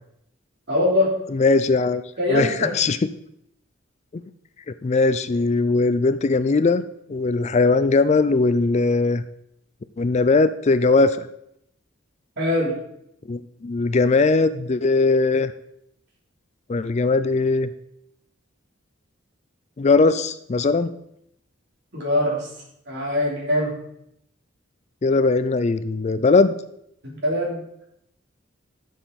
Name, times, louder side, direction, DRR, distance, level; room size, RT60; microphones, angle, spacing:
voice 1, 0.7-1.1 2.2-2.7 12.4-12.7 21.9-22.5 22.9-23.8 27.0-27.6, left 1 dB, 55° right, -3 dB, 3.5 m, -22 dB
voice 2, 1.3-2.0 2.3-3.0 4.1-4.2 4.8-6.8 7.1-9.2 10.0-11.3 13.3-15.5 16.7-17.7 19.8-20.9 25.0-26.6, left 3 dB, 35° left, 13 dB, 0.4 m, -19 dB
11.5 x 6.6 x 4.1 m, 0.76 s
head